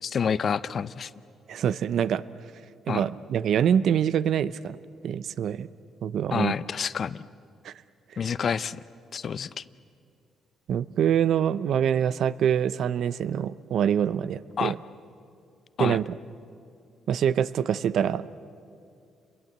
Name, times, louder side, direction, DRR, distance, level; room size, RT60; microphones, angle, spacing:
voice 1, 0.0-1.1 2.9-3.0 6.3-7.3 8.2-8.8 9.1-9.6 14.6-14.7 15.8-16.0, left 7 dB, 50° left, 16 dB, 0.7 m, -28 dB
voice 2, 1.5-2.2 2.9-4.8 5.0-5.7 6.0-6.5 7.6-7.7 10.7-14.8 15.8-16.1 17.1-18.3, right 9 dB, 70° right, 16 dB, 0.7 m, -25 dB
29.5 x 22.5 x 8.1 m, 2.4 s
cardioid pair, 90°, 0 cm